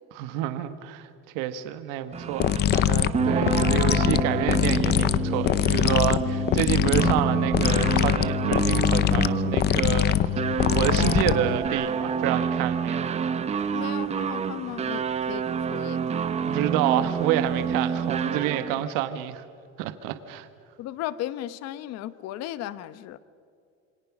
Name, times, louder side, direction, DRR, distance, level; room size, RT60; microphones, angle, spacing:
voice 1, 0.1-1.1 1.3-13.2 16.5-19.4 19.8-20.5, right 11 dB, 65° right, 10 dB, 1.5 m, -28 dB
sound 1, 2.1-18.9, right 7 dB, 20° right, 0.7 m, -28 dB
sound 2, 2.4-11.7, left 12 dB, 30° left, 0.6 m, -23 dB
voice 2, 13.7-16.0 20.8-23.2, left 13 dB, 45° left, 15 dB, 1.0 m, -35 dB
27.5 x 24.5 x 6.1 m, 2.4 s
cardioid pair, 155°, 34 cm